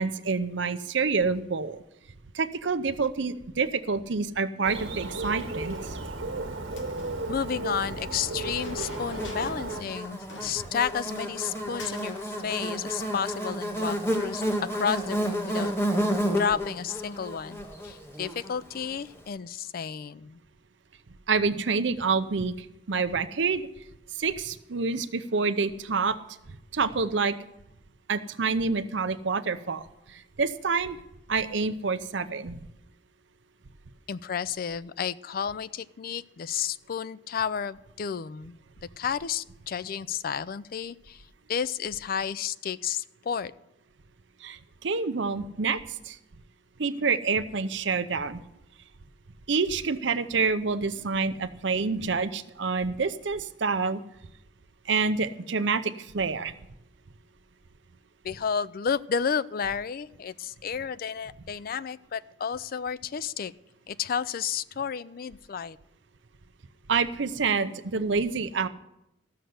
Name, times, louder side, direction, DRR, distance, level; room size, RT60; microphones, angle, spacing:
voice 1, 0.0-1.8 2.3-6.0 21.3-23.7 24.1-26.2 26.7-27.4 28.1-31.0 31.3-32.6 44.4-46.2 46.8-48.4 49.5-54.0 54.9-56.5 66.9-68.7, right 4 dB, 70° right, 12 dB, 0.7 m, -27 dB
Bird, 4.6-9.8, right 2 dB, 90° right, 1.6 m, -34 dB
Chink clink, 5.2-6.1 6.7-7.9 8.6-9.8 10.0-10.1 10.3-11.5 11.8-12.3, left 3 dB, 80° left, 1.2 m, -47 dB
voice 2, 7.3-15.7 16.4-20.4 34.1-41.2 41.5-43.5 58.2-63.5 63.9-65.8, left 7 dB, 50° left, 17 dB, 0.4 m, -32 dB
Buzz, 8.4-18.9, equal, 15° left, 1.4 m, -31 dB
14.0 x 6.7 x 7.8 m, 0.87 s
head